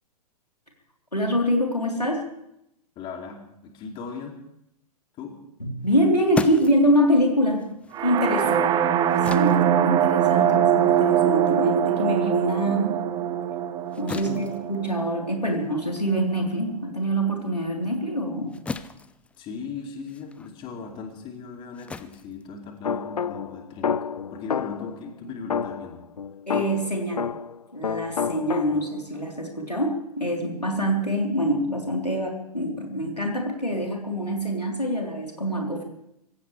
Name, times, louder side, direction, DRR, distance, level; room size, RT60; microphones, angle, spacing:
voice 1, 1.1-2.3 5.6-7.7 8.0-8.6 9.3-13.0 14.0-18.6 26.5-27.3 27.7-35.8, equal, 90° left, 0 dB, 3.6 m, -25 dB
voice 2, 3.0-4.4 5.1-5.4 8.4-8.5 10.4-10.5 14.1-14.4 19.4-24.0 24.3-26.0, left 5 dB, 25° left, 2 dB, 2.6 m, -38 dB
sound 1, 5.8-12.6 13.0-23.2, left 4 dB, 5° left, 0.5 m, -39 dB
sound 2, 7.9-15.8, right 9 dB, 20° right, 0.8 m, -23 dB
sound 3, 22.8-25.0 25.5-27.6 27.8-29.0, left 6 dB, 70° left, 0.5 m, -29 dB
25.5 x 16.0 x 3.3 m, 0.78 s
figure-of-eight pair, 110°, 20 cm